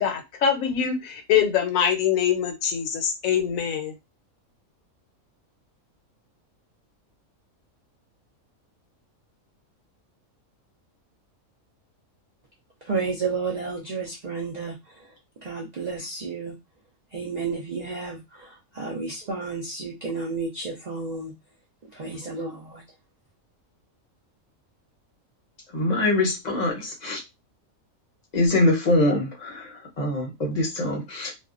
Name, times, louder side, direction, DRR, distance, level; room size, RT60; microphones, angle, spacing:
voice 1, 0.0-3.9, left 8 dB, 75° left, 1.0 m, -24 dB
voice 2, 12.8-15.1 15.4-16.5 17.1-21.3 21.9-22.8, right 4 dB, 75° right, 0.3 m, -31 dB
voice 3, 25.7-27.2 28.3-31.3, left 2 dB, 40° left, 0.7 m, -24 dB
2.5 x 2.1 x 2.4 m
omnidirectional pair, 1.5 m